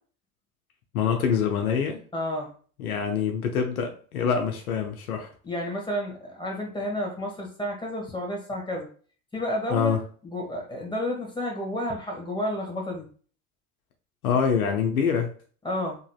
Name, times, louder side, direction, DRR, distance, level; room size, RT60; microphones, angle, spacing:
voice 1, 0.9-2.0 2.8-5.3 9.7-10.0 14.2-15.3, left 6 dB, 80° left, 3 dB, 0.7 m, -25 dB
voice 2, 2.1-2.5 5.4-8.9 9.3-9.9 10.2-13.1 15.6-16.0, left 1 dB, 10° left, 0 dB, 1.4 m, -31 dB
4.0 x 2.9 x 2.3 m, 0.42 s
hypercardioid pair, 80°, 43 cm